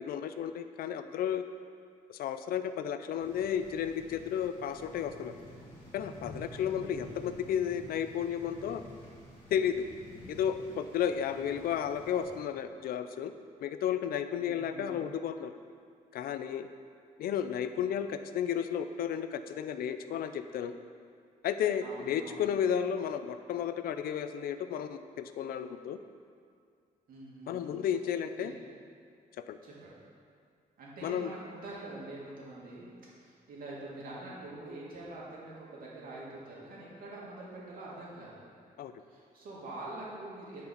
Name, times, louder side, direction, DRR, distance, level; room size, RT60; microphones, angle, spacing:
voice 1, 0.0-1.4 2.1-5.3 5.9-8.8 9.5-9.9 10.3-13.3 13.6-15.5 16.1-16.7 17.2-20.8 21.4-26.0 27.5-28.5 29.5-29.6 31.0-31.3 38.8-38.9, left 8 dB, 85° left, 10 dB, 0.5 m, -33 dB
sound 1, 3.2-12.4, left 1 dB, 15° left, 2.1 m, -50 dB
voice 2, 6.7-7.5 11.0-11.4 14.4-15.0 21.8-22.4 27.1-27.7 28.4-28.5 29.6-29.9 30.8-32.9 33.2-38.4 39.1-40.6, right 2 dB, 75° right, -6 dB, 2.3 m, -45 dB
8.6 x 4.7 x 5.8 m, 2.2 s
wide cardioid pair, 155°, 15 cm